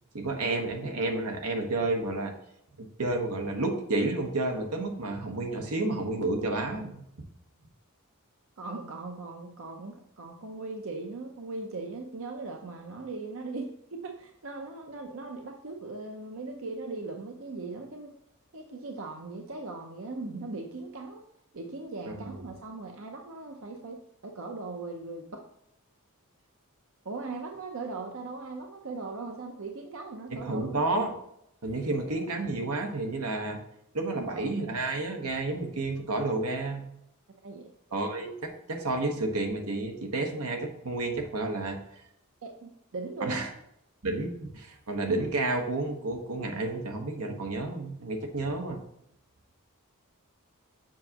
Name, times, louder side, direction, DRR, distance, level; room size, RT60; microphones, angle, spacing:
voice 1, 0.1-2.3 2.8-7.0 22.2-22.3 30.3-31.1 31.6-33.6 33.9-36.8 37.9-41.8 43.2-43.5 44.0-48.8, right 2 dB, 85° right, 3 dB, 1.2 m, -30 dB
voice 2, 8.6-18.1 18.5-21.3 21.5-25.4 27.0-30.8 31.9-32.1 34.1-34.4 37.4-37.7 42.4-43.5, right 3 dB, 65° right, 3 dB, 0.7 m, -39 dB
7.4 x 5.9 x 2.9 m, 0.76 s
head